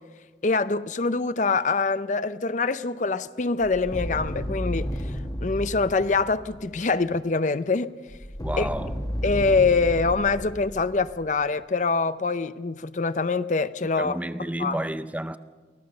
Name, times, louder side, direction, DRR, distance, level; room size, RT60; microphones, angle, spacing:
voice 1, 0.4-4.9 5.4-7.9 8.6-8.7 9.2-14.1 14.6-14.8, left 4 dB, 40° left, 0.5 m, -24 dB
sound 1, 3.6-6.9 8.1-11.4, equal, 20° left, 1.3 m, -33 dB
voice 2, 8.4-9.0 14.0-15.4, right 1 dB, 10° right, 0.5 m, -31 dB
23.5 x 17.5 x 6.7 m
head